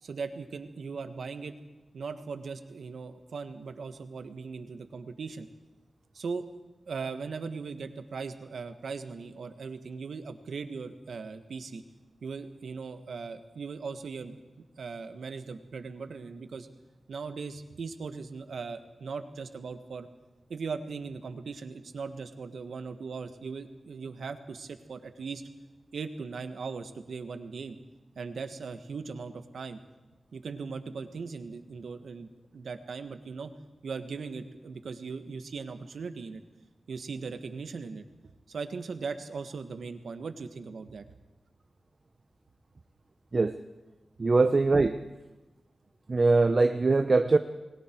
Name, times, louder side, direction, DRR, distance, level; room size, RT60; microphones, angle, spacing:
voice 1, 0.0-1.5 1.9-5.5 6.1-6.5 6.9-11.8 12.2-14.4 14.8-16.7 17.1-20.1 20.5-25.4 25.9-27.8 28.1-29.8 30.3-33.5 33.8-36.4 36.9-38.0 38.5-41.0, right 5 dB, 90° right, 8 dB, 1.6 m, -39 dB
voice 2, 44.2-45.0 46.1-47.4, right 3 dB, 45° right, 8 dB, 0.8 m, -22 dB
30.0 x 21.5 x 4.7 m, 1.1 s
wide cardioid pair, 100°, 0 cm